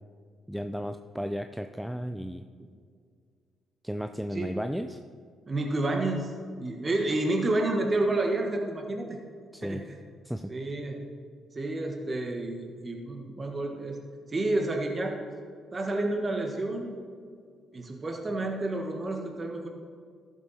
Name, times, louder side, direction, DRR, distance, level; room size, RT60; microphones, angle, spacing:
voice 1, 0.5-2.4 3.8-5.0 9.5-9.8 10.2-10.5, equal, 5° right, 8 dB, 0.4 m, -34 dB
voice 2, 5.5-9.2 9.6-9.8 10.5-11.0 11.5-14.0 14.3-15.2 15.7-16.9 17.7-19.7, right 2 dB, 35° right, 2 dB, 1.4 m, -30 dB
14.0 x 7.2 x 4.2 m, 2.1 s
supercardioid pair, 65°, 0 cm